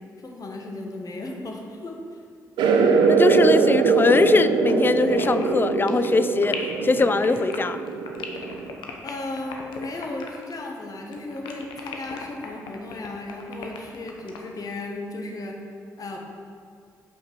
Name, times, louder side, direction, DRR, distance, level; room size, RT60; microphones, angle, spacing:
voice 1, 0.2-2.2 9.0-15.6 16.0-16.2, left 2 dB, 50° left, 1 dB, 1.3 m, -35 dB
sound 1, 2.6-8.7, right 5 dB, 80° right, 0.6 m, -22 dB
voice 2, 3.1-7.8, left 3 dB, 25° left, 12 dB, 0.4 m, -21 dB
sound 2, 4.6-10.8 11.0-14.5, left 6 dB, 80° left, 0.8 m, -38 dB
5.6 x 4.5 x 6.0 m, 2.2 s
hypercardioid pair, 45°, 8 cm